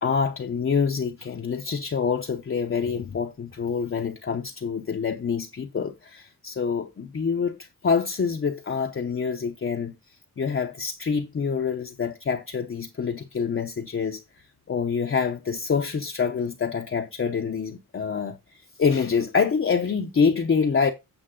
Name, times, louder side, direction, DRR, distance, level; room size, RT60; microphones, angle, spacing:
voice 1, 0.0-7.6 7.8-9.9 10.4-14.2 14.7-18.4 18.8-20.9, left 6 dB, 35° left, 0.7 m, -26 dB
8.6 x 6.4 x 3.7 m
wide cardioid pair, 155°, 35 cm